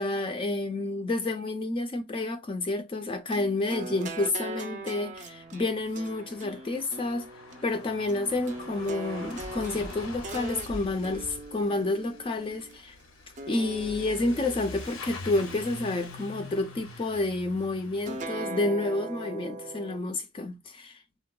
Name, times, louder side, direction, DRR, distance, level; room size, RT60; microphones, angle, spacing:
voice 1, 0.0-7.3 7.6-13.0 13.5-21.0, left 2 dB, 25° left, 0.3 m, -29 dB
sound 1, 3.3-12.8 13.4-14.9 15.4-16.5 18.0-20.0, right 2 dB, 40° right, 0.5 m, -40 dB
Truck / Accelerating revving vroom, 4.6-4.7 4.8-18.2, left 2 dB, 85° left, 0.7 m, -44 dB
3.6 x 2.1 x 2.2 m
head